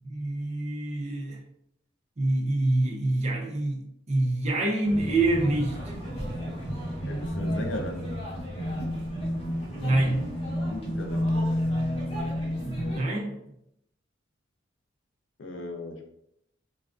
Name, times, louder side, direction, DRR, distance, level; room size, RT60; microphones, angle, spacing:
voice 1, 0.0-1.4 2.2-5.9 9.8-10.3 12.6-13.4, right 2 dB, 35° right, 0.4 m, -26 dB
sound 1, 4.8-13.0, equal, 30° left, 0.8 m, -31 dB
voice 2, 6.9-8.1 10.7-11.3 15.4-16.1, left 1 dB, 70° left, 0.4 m, -37 dB
2.3 x 2.2 x 2.3 m
head